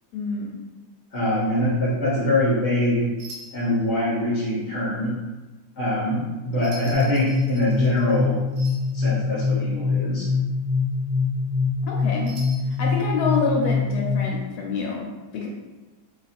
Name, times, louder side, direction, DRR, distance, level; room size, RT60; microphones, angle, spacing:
voice 1, 0.1-0.6 11.8-12.4 12.7-15.1 15.3-15.5, left 4 dB, 80° left, -1 dB, 1.1 m, -27 dB
voice 2, 1.1-3.1 3.5-5.1 5.8-8.4 8.9-10.3, left 1 dB, 55° left, -6 dB, 0.9 m, -23 dB
sound 1, 1.2-1.5 3.2-3.8 6.5-8.2 8.5-9.0 12.2-12.8, right 1 dB, 55° right, 0.7 m, -43 dB
sound 2, 6.9-14.5, left 4 dB, 70° right, 1.4 m, -24 dB
2.8 x 2.4 x 4.1 m, 1.2 s
omnidirectional pair, 1.7 m